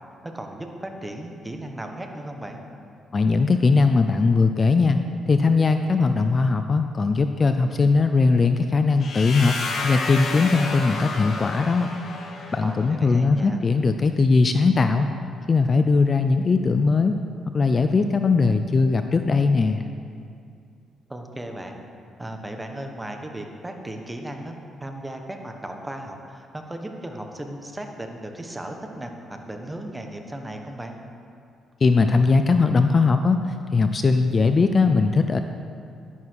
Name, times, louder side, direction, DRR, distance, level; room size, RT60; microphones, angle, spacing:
voice 1, 0.2-2.6 12.6-13.6 21.1-21.8 22.2-24.5 24.8-30.9, right 1 dB, 15° right, 3 dB, 1.4 m, -36 dB
voice 2, 3.1-5.0 5.3-9.5 9.8-11.9 12.5-15.1 15.5-17.2 17.5-19.8 31.8-33.4 33.7-35.4, left 4 dB, 35° left, 8 dB, 0.5 m, -19 dB
sound 1, 9.0-12.8, left 3 dB, 55° left, 1.6 m, -31 dB
11.5 x 11.0 x 4.8 m, 2.4 s
cardioid pair, 90°, 0 cm